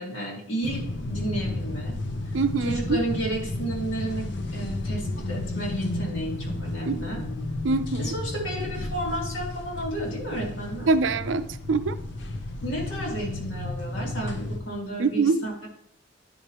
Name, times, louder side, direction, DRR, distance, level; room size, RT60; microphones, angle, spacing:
voice 1, 0.0-2.0 2.6-7.2 8.0-10.9 12.6-15.7, right 1 dB, 85° left, -2 dB, 2.2 m, -32 dB
sound 1, 0.6-14.6, left 2 dB, 65° left, 0.8 m, -32 dB
voice 2, 2.3-3.0 6.9-7.1 7.6-8.1 10.9-12.0 15.0-15.4, right 4 dB, 75° right, 12 dB, 0.4 m, -24 dB
10.0 x 4.9 x 3.0 m, 0.69 s
head